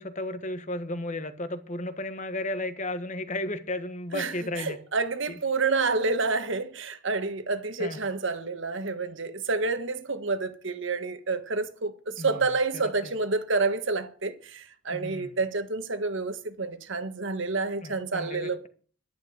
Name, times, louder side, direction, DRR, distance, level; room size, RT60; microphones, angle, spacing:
voice 1, 0.0-4.8 5.3-5.4 7.8-8.0 12.2-12.5 12.7-13.1 14.9-15.4 17.8-18.7, left 1 dB, 35° left, 1.3 m, -34 dB
voice 2, 4.1-18.7, right 3 dB, 60° right, 1.5 m, -29 dB
11.5 x 10.5 x 6.5 m
head